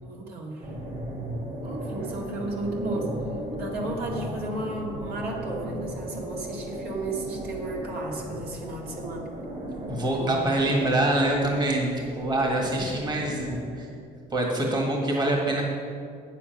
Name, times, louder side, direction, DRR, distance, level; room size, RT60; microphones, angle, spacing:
voice 1, 0.0-0.7 1.6-3.1 3.6-9.3 10.1-10.9, right 2 dB, 65° right, -1 dB, 1.9 m, -34 dB
sound 1, 0.6-13.7, right 1 dB, 50° right, 2.1 m, -36 dB
voice 2, 9.9-13.9 14.3-15.6, right 1 dB, 25° right, 0 dB, 1.6 m, -25 dB
8.5 x 7.2 x 5.9 m, 2.3 s
cardioid pair, 110°, 17 cm